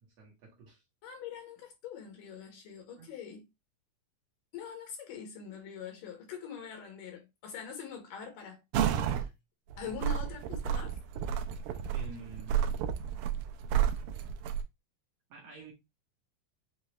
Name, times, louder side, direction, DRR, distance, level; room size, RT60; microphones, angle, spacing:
voice 1, 0.0-0.8 3.0-3.1 11.9-12.7 15.3-15.7, right 3 dB, 60° right, 1.9 m, -49 dB
voice 2, 1.0-3.5 4.5-9.3 9.8-11.0, left 7 dB, 75° left, 2.8 m, -44 dB
sound 1, 8.7-9.3 9.7-14.6, right 9 dB, 85° right, 1.7 m, -31 dB
6.4 x 2.4 x 3.0 m
omnidirectional pair, 3.8 m